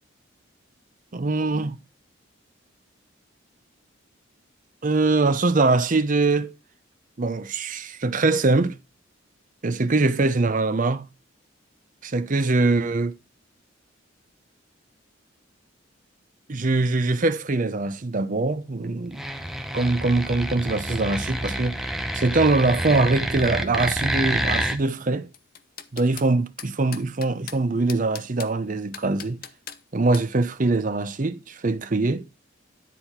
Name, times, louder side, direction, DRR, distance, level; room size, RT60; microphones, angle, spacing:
voice 1, 1.1-1.8 4.8-6.5 7.2-8.8 9.6-11.1 12.0-13.1 16.5-19.2 19.7-21.8 22.1-25.3 25.9-29.4 29.9-32.3, right 3 dB, 40° right, 0.6 m, -23 dB
sound 1, 19.1-24.8, equal, ahead, 0.7 m, -28 dB
sound 2, 25.3-26.3 26.6-27.6 27.9-28.5 28.9-29.8 30.1-30.3, left 9 dB, 45° left, 0.7 m, -39 dB
10.0 x 4.2 x 4.2 m
head